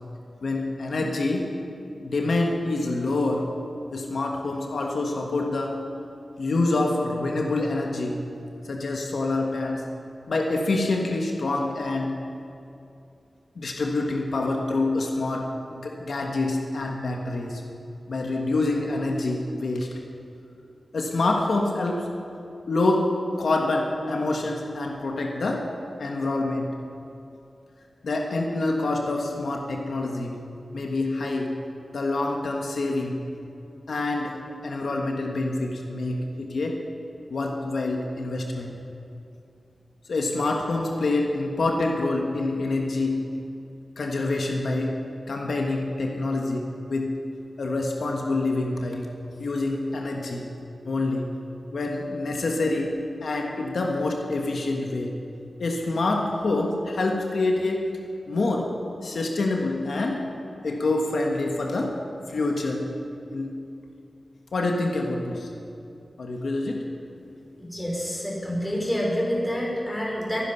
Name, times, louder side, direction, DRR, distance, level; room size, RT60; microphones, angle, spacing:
voice 1, 0.4-1.5 2.0-3.6 3.9-5.9 6.4-8.3 8.6-9.9 10.3-12.2 13.5-17.6 18.1-20.0 20.9-22.2 22.7-26.7 28.0-30.5 30.7-31.6 31.9-33.3 33.9-36.8 37.3-38.7 40.1-43.4 44.0-47.1 47.6-50.5 50.8-51.3 51.7-55.2 55.6-58.8 59.0-60.3 60.6-63.0 63.3-63.5 64.5-65.5 66.2-66.9, left 2 dB, 85° left, 1 dB, 1.5 m, -26 dB
voice 2, 67.6-70.4, equal, 10° left, -3 dB, 5.1 m, -27 dB
23.5 x 10.5 x 5.7 m, 2.7 s
wide cardioid pair, 95°, 0 cm